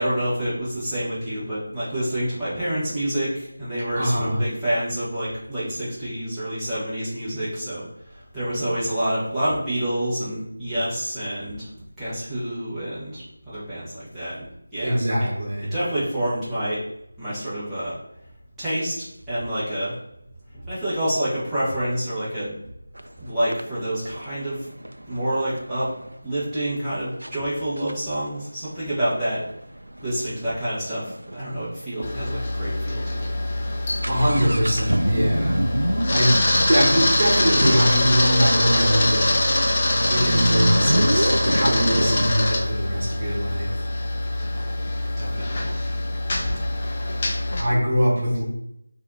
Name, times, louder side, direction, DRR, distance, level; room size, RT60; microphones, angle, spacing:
voice 1, 0.0-11.7 12.0-14.5 14.7-15.3 15.7-16.8 17.2-18.0 18.6-19.9 20.7-22.5 23.2-24.7 25.1-25.9 26.2-29.4 30.0-33.3 45.2-45.7, right 1 dB, 5° right, -16 dB, 1.3 m, -28 dB
voice 2, 3.9-4.4 14.8-15.7 34.0-35.6 36.1-39.4 40.1-43.7 47.6-48.4, equal, 40° right, -5 dB, 1.5 m, -22 dB
sound 1, 23.0-23.1 23.5-26.2 26.8-26.9 27.2-27.4 27.8-31.4 31.7-31.8 32.0-32.1 32.7-32.9 33.2-42.3, right 1 dB, 75° right, 0.3 m, -27 dB
Camera, 32.0-47.6, left 1 dB, 30° left, 0.7 m, -24 dB
4.0 x 2.7 x 3.9 m, 0.79 s
figure-of-eight pair, 165°, 0 cm